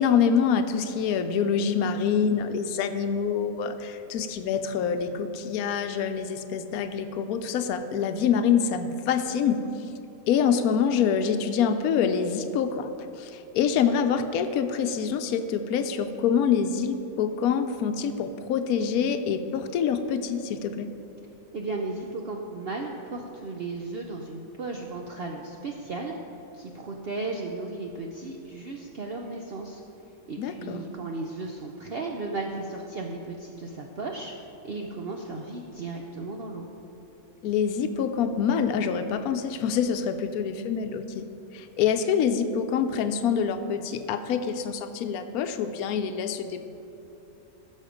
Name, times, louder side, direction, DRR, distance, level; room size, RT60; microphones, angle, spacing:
voice 1, 0.0-9.7 10.3-12.9 13.2-20.9 30.4-30.9 37.4-46.6, left 7 dB, 75° left, 8 dB, 1.1 m, -26 dB
voice 2, 21.5-26.1 26.6-29.8 30.3-34.3 34.6-36.7, right 3 dB, 55° right, 1 dB, 0.7 m, -35 dB
15.0 x 6.4 x 5.1 m, 2.8 s
omnidirectional pair, 1.6 m